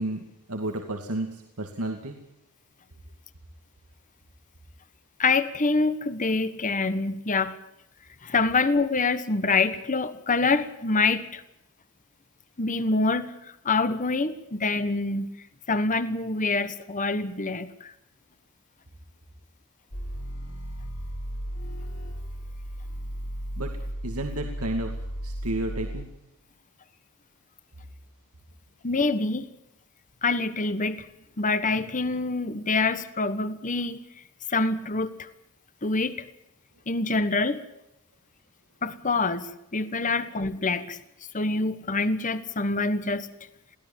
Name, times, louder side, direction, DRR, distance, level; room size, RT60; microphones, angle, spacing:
voice 1, 0.0-2.2 23.6-25.0 25.2-26.1, right 1 dB, 85° right, 3 dB, 2.4 m, -32 dB
voice 2, 5.2-7.5 8.2-11.4 12.6-15.3 15.7-17.9 28.8-29.5 30.2-31.1 31.4-34.0 34.5-35.3 35.8-36.2 36.9-37.6 38.8-41.0 41.3-43.3, left 3 dB, 35° left, 12 dB, 1.4 m, -26 dB
sound 1, 19.9-26.0, equal, 80° left, 6.2 m, -35 dB
23.0 x 17.0 x 7.3 m, 0.86 s
head